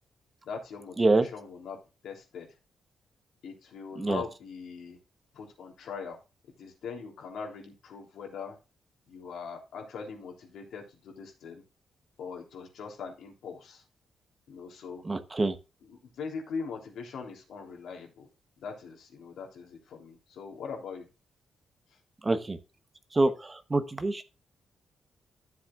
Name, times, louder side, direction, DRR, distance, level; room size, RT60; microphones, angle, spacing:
voice 1, 0.4-1.8 2.0-2.5 3.4-5.0 5.3-6.2 6.6-8.6 9.1-11.6 12.2-13.8 14.5-15.0 15.8-18.3 18.6-21.1, left 5 dB, 70° left, 2 dB, 3.3 m, -41 dB
voice 2, 15.0-15.6 22.2-22.6 23.1-24.2, right 2 dB, 20° right, 9 dB, 1.0 m, -26 dB
13.5 x 7.5 x 2.5 m, 0.29 s
wide cardioid pair, 170°, 0 cm